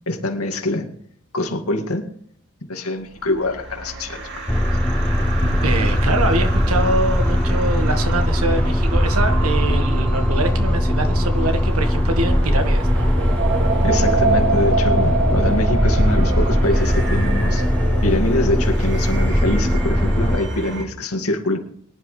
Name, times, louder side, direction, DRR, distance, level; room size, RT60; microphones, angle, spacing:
voice 1, 0.1-0.9 1.3-2.0 2.7-4.2 13.8-17.6 18.0-21.6, left 1 dB, 80° left, 4 dB, 2.2 m, -24 dB
sound 1, 3.2-20.8, right 2 dB, 55° right, 2.4 m, -25 dB
sound 2, 4.5-20.4, equal, 5° left, 0.4 m, -20 dB
voice 2, 5.6-13.1, right 2 dB, 80° right, 7 dB, 1.7 m, -24 dB
23.5 x 11.0 x 3.3 m, 0.64 s
head